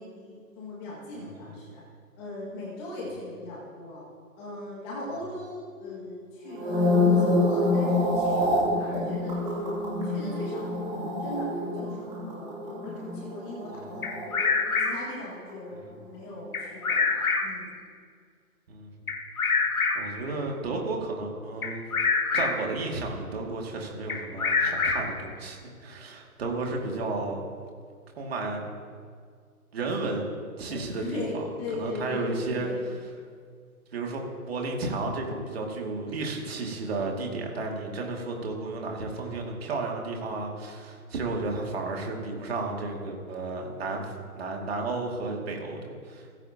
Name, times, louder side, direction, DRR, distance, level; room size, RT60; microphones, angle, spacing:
voice 1, 0.0-1.8 2.2-4.0 4.4-14.5 14.8-17.7 30.7-32.8, left 1 dB, 15° left, -5 dB, 2.0 m, -39 dB
voice 2, 1.2-1.5 13.7-13.8 15.7-15.8 18.7-19.1 19.9-21.8 22.3-27.4 28.2-28.6 29.7-31.4 31.8-33.0 33.9-46.3, right 3 dB, 40° right, 0 dB, 2.5 m, -33 dB
sound 1, 6.5-14.9 15.1-15.5, left 2 dB, 10° right, 2.4 m, -27 dB
Bird vocalization bird call bird song, 14.0-15.2 16.5-17.7 19.1-20.2 21.6-22.7 24.1-25.3, left 4 dB, 70° left, 1.7 m, -26 dB
29.0 x 9.9 x 2.9 m, 2.1 s
hypercardioid pair, 155°, 45 cm